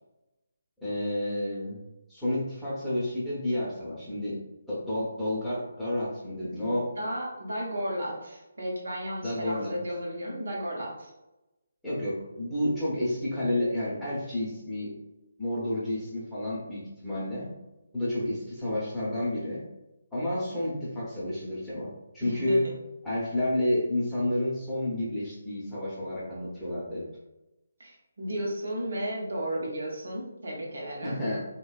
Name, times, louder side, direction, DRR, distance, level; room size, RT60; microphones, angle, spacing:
voice 1, 0.8-1.8 2.1-4.4 4.7-6.9 9.2-9.7 11.8-15.0 15.4-17.5 17.9-19.6 20.1-22.7 23.0-27.1 31.0-31.4, left 1 dB, 5° left, -11 dB, 0.8 m, -30 dB
voice 2, 6.4-11.1 22.2-22.7 27.8-31.2, equal, 60° right, -3 dB, 0.8 m, -34 dB
3.2 x 2.2 x 2.4 m, 0.97 s
figure-of-eight pair, 145°, 0 cm